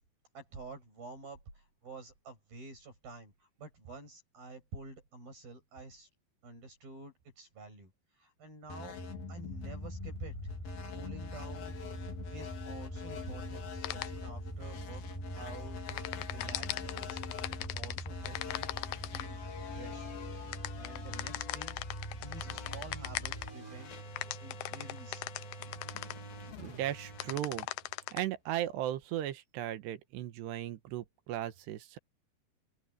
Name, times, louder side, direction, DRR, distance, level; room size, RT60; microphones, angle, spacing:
voice 1, 0.3-6.1 6.4-9.0 9.3-10.3 10.9-11.8 12.3-15.0 15.3-18.7 19.1-19.4 19.8-20.1 20.8-21.8 22.1-23.9 24.4-25.2, right 3 dB, 50° right, 9.8 m, -49 dB
sound 1, 8.7-28.2, left 2 dB, 55° left, 5.0 m, -44 dB
sound 2, 9.5-23.5, left 1 dB, 5° left, 4.4 m, -45 dB
sound 3, 13.8-14.1 15.9-19.2 20.5-23.5 24.2-26.1 27.2-28.2, left 16 dB, 85° left, 2.2 m, -38 dB
voice 2, 26.6-27.7 28.1-32.0, right 12 dB, 70° right, 3.0 m, -36 dB
open air
omnidirectional pair, 5.4 m